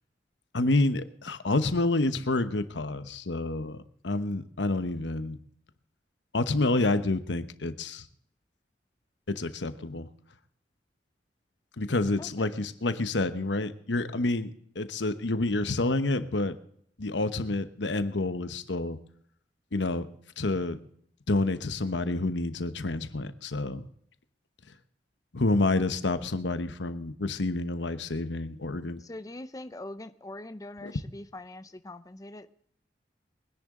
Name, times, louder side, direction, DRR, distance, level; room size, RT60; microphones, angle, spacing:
voice 1, 0.5-5.4 6.3-8.1 9.3-10.1 11.8-16.6 17.0-19.0 19.7-20.1 20.4-20.8 21.3-23.8 25.3-29.0 30.8-30.9, left 2 dB, 90° left, 11 dB, 1.1 m, -28 dB
voice 2, 12.2-12.6 29.0-32.5, left 1 dB, 20° left, 11 dB, 0.6 m, -43 dB
23.0 x 10.5 x 3.8 m, 0.65 s
head